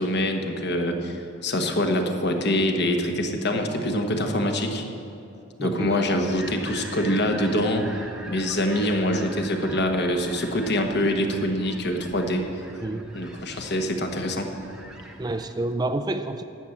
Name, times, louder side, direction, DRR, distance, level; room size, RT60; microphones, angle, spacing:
voice 1, 0.0-4.8 5.6-7.9 8.3-12.4 13.1-14.5, left 1 dB, 55° left, 4 dB, 1.2 m, -25 dB
voice 2, 5.6-6.2 12.8-13.1 15.2-16.4, right 2 dB, 20° right, 9 dB, 0.4 m, -29 dB
sound 1, 6.3-15.5, right 1 dB, 5° right, 0.9 m, -43 dB
12.0 x 7.8 x 7.1 m, 2.7 s
head